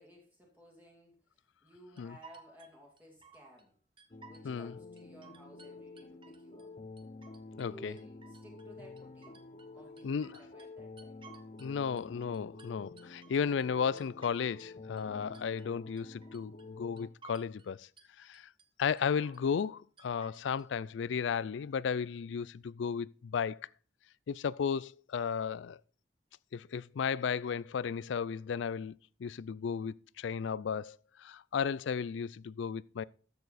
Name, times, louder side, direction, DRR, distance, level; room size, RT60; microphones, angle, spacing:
voice 1, 0.0-3.7 4.2-6.7 7.6-9.5 9.7-11.2, equal, 10° right, 2.3 m, -57 dB
sound 1, 2.0-3.7 4.0-4.7 5.0-6.7 7.0-7.7 8.0-9.7 10.0-11.7 12.0-14.7 15.0-15.7 16.0-16.7 17.0-17.7 18.0-18.7 19.0-19.7 20.0-20.7, right 5 dB, 25° right, 0.8 m, -58 dB
sound 2, 4.1-17.1, left 3 dB, 35° left, 0.7 m, -49 dB
voice 2, 7.6-7.9 10.0-10.4 11.6-17.9 18.2-18.5 18.8-23.7 24.3-25.8 26.5-28.9 29.2-33.0, left 6 dB, 80° left, 0.4 m, -34 dB
13.0 x 6.9 x 4.2 m
head